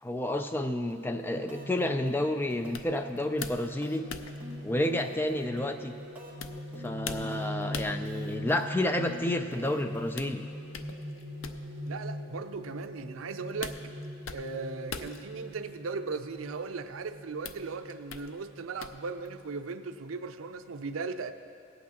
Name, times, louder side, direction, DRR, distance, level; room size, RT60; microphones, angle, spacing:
voice 1, 0.0-4.0 4.6-5.9 6.8-10.4, left 1 dB, 10° left, 7 dB, 0.4 m, -30 dB
sound 1, 0.9-1.2 1.5-1.8 2.1-3.0 3.2-6.5 6.7-7.6 7.9-10.1, left 2 dB, 10° right, 1.3 m, -48 dB
sound 2, 1.1-19.6, left 5 dB, 80° left, 0.5 m, -46 dB
sound 3, 1.3-20.5, equal, 60° right, 1.0 m, -42 dB
voice 2, 11.9-13.8 14.3-21.3, right 4 dB, 90° right, 10 dB, 0.5 m, -37 dB
18.5 x 8.4 x 2.9 m, 2.5 s
head